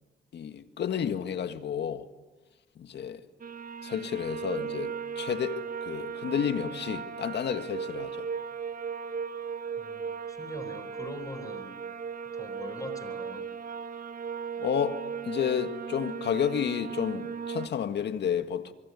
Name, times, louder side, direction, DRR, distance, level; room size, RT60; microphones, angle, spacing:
voice 1, 0.3-2.0 2.8-3.2 3.8-8.3 14.6-18.7, left 8 dB, 60° left, 1.8 m, -31 dB
sound 1, 3.4-17.7, right 6 dB, 45° right, 1.2 m, -37 dB
voice 2, 9.8-11.8 12.3-13.5, left 2 dB, 15° left, 4.1 m, -42 dB
25.5 x 23.0 x 9.7 m
cardioid pair, 90°, 20 cm